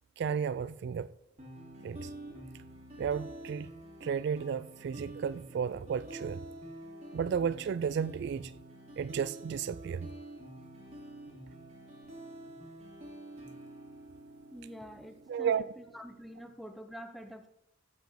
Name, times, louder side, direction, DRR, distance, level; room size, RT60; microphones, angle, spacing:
voice 1, 0.2-1.1 1.8-2.1 3.0-3.7 4.0-6.4 7.1-8.5 9.0-10.1 15.3-15.7, right 7 dB, 60° right, 0.3 m, -33 dB
sound 1, 1.4-16.4, right 1 dB, 35° right, 2.4 m, -48 dB
voice 2, 14.5-17.5, equal, ahead, 0.8 m, -47 dB
14.0 x 5.1 x 6.7 m
head